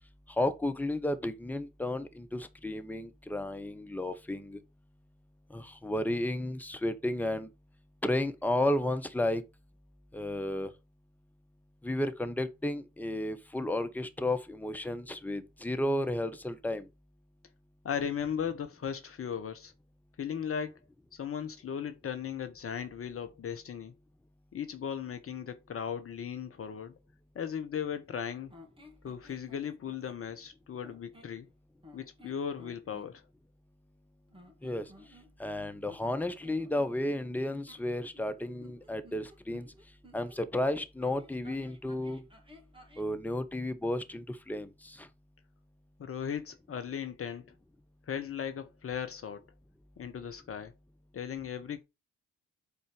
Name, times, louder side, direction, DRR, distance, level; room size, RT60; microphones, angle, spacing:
voice 1, 0.4-4.6 5.5-7.5 8.0-9.4 10.1-10.7 11.8-16.9 34.6-34.8 35.4-39.7 40.1-42.2 43.0-45.1, left 1 dB, 5° left, 1.3 m, -33 dB
voice 2, 17.8-19.7 20.2-20.8 21.1-23.9 24.5-26.9 27.3-28.5 29.0-31.5 31.9-33.2 46.0-47.5 48.1-49.4 50.0-50.7 51.1-51.8, left 8 dB, 40° left, 1.0 m, -37 dB
sound 1, 28.5-30.2 30.8-31.4 31.8-33.1 34.3-35.5 35.8-40.4 41.0-43.1, left 2 dB, 15° right, 3.1 m, -56 dB
8.2 x 4.4 x 5.1 m
figure-of-eight pair, 40°, 34 cm